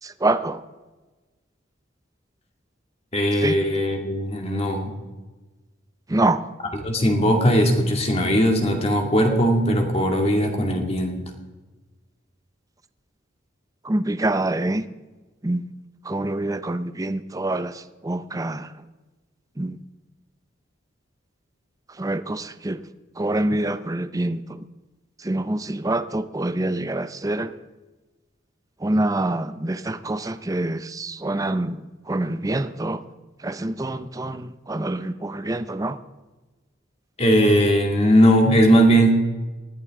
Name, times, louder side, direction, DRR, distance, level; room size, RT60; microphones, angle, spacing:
voice 1, 0.0-0.6 3.4-3.6 6.1-6.4 13.8-14.8 15.4-15.6 16.1-18.7 19.6-19.8 22.0-22.8 23.2-24.6 25.2-27.5 28.8-31.8 32.1-33.0 33.4-36.0, right 2 dB, 20° right, 0.6 m, -26 dB
voice 2, 3.1-4.9 6.8-11.2 37.2-39.1, equal, 35° left, 2.3 m, -19 dB
19.5 x 14.5 x 3.8 m
head